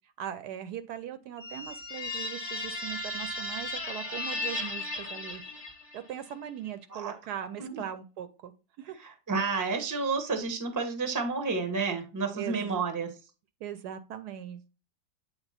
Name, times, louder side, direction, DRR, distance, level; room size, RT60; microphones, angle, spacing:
voice 1, 0.2-5.4 5.9-8.5 8.8-9.0 12.3-12.8 13.6-14.7, right 10 dB, 75° right, 11 dB, 1.1 m, -40 dB
sound 1, 1.4-6.1, left 2 dB, 25° left, 0.6 m, -36 dB
voice 2, 8.9-13.1, right 4 dB, 15° right, 5 dB, 0.7 m, -31 dB
8.0 x 3.6 x 4.1 m, 0.32 s
omnidirectional pair, 1.9 m